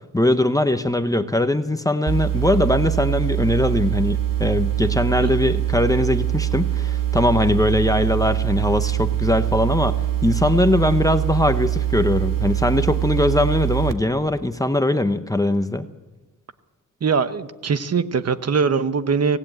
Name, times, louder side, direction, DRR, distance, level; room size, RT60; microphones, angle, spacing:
voice 1, 0.1-15.9, left 1 dB, 10° left, 9 dB, 0.8 m, -21 dB
sound 1, 2.1-13.9, right 12 dB, 75° right, 1.8 m, -23 dB
voice 2, 17.0-19.4, right 5 dB, 50° right, 11 dB, 1.1 m, -21 dB
24.5 x 18.0 x 8.9 m, 1.2 s
wide cardioid pair, 170°, 33 cm